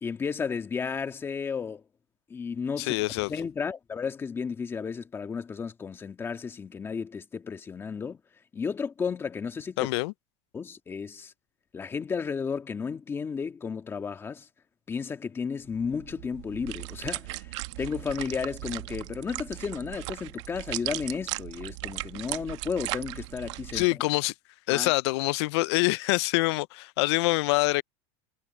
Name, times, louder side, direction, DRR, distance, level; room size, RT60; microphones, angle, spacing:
voice 1, 0.0-1.8 2.3-8.2 8.5-9.9 10.5-11.3 11.7-14.5 14.9-24.0 24.7-24.9, left 6 dB, 15° left, 1.7 m, -33 dB
voice 2, 2.8-3.3 9.8-10.1 23.7-24.3 24.7-27.8, left 22 dB, 55° left, 0.4 m, -25 dB
sound 1, 15.7-23.9, right 20 dB, 60° right, 1.2 m, -37 dB
supercardioid pair, 160°, 17 cm